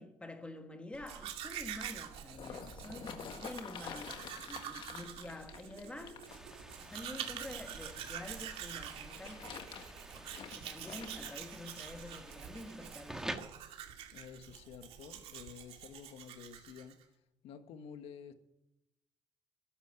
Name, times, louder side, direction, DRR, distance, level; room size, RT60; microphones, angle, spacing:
voice 1, 0.0-6.2 6.8-9.7 10.1-13.4, left 1 dB, 10° left, 1.4 m, -48 dB
Domestic sounds home sounds, 0.9-17.0, right 10 dB, 80° right, 2.3 m, -46 dB
sound 1, 1.9-8.0 8.9-11.4 12.1-12.2, left 7 dB, 55° left, 1.7 m, -49 dB
sound 2, 6.3-13.4, right 1 dB, 5° right, 1.5 m, -49 dB
voice 2, 14.1-17.0 17.4-18.3, left 7 dB, 80° left, 1.7 m, -50 dB
13.5 x 11.0 x 8.2 m
cardioid pair, 120°, 10 cm